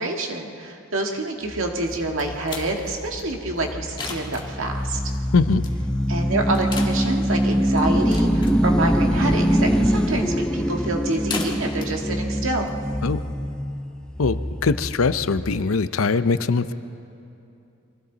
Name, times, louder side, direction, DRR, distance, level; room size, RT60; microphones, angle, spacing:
voice 1, 0.0-5.0 6.1-12.7, right 2 dB, 70° right, 1 dB, 2.0 m, -27 dB
sound 1, 1.5-15.7, equal, 5° left, 0.5 m, -24 dB
sound 2, 1.9-13.3, left 3 dB, 25° left, 2.0 m, -38 dB
voice 2, 14.2-16.7, left 4 dB, 85° left, 12 dB, 0.7 m, -21 dB
30.0 x 23.0 x 4.1 m, 2.7 s
head